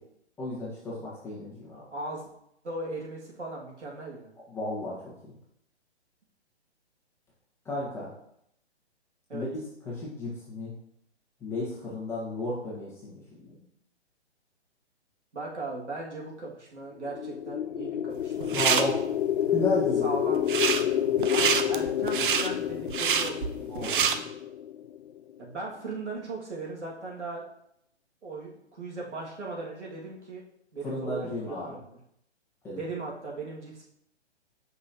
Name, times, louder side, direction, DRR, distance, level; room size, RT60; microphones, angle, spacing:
voice 1, 0.4-1.8 4.5-4.9 5.2-5.3 7.6-8.1 9.3-9.5 9.8-10.7 11.4-13.6 18.5-19.0 19.5-20.1 23.6-24.3 30.8-31.7 32.6-32.8, left 2 dB, 10° left, -7 dB, 1.5 m, -33 dB
voice 2, 1.9-2.3 2.6-4.3 9.3-9.5 15.3-19.0 20.0-20.4 21.3-24.0 25.4-27.4 28.2-30.4 30.7-32.0 32.7-33.9, right 2 dB, 85° right, -3 dB, 2.3 m, -38 dB
sound 1, 17.0-25.2, left 10 dB, 75° left, 0.5 m, -29 dB
sound 2, 18.2-18.8 20.3-20.8 21.2-24.1, right 7 dB, 50° right, 0.5 m, -26 dB
6.8 x 5.4 x 2.9 m, 0.75 s
hypercardioid pair, 140°, 34 cm